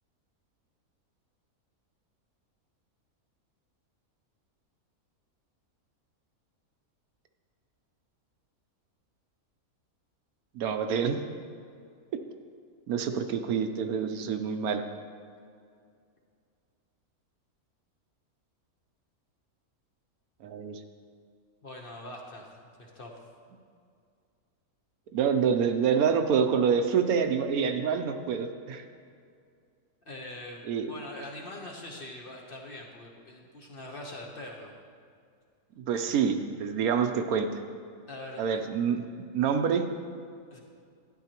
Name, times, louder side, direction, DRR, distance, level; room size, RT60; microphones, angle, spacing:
voice 1, 10.5-11.2 12.9-14.8 20.4-20.8 25.1-28.8 30.6-30.9 35.8-37.6 38.4-39.8, right 6 dB, 80° right, 7 dB, 1.1 m, -27 dB
voice 2, 21.6-22.5 22.8-23.1 30.0-34.7 35.9-36.2 38.1-38.5 40.5-40.6, left 1 dB, 40° left, -1 dB, 1.0 m, -43 dB
12.0 x 9.7 x 2.9 m, 2.3 s
omnidirectional pair, 1.6 m